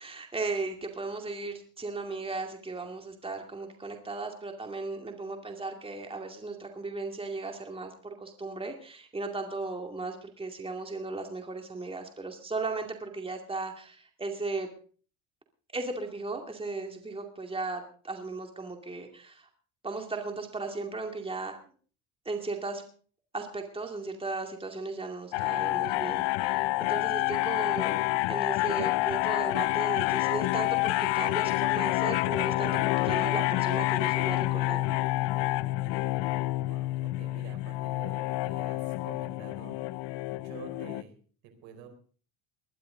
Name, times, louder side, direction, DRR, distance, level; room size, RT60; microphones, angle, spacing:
voice 1, 0.0-14.7 15.7-19.5 19.8-21.6 22.2-22.8 23.3-34.8, right 3 dB, 10° right, 4 dB, 2.4 m, -36 dB
sound 1, 25.3-41.0, left 20 dB, 70° left, 0.7 m, -28 dB
voice 2, 36.7-39.8 40.3-41.1 41.4-41.9, right 7 dB, 75° right, 6 dB, 4.6 m, -48 dB
20.5 x 12.0 x 3.9 m, 0.42 s
supercardioid pair, 110°, 44 cm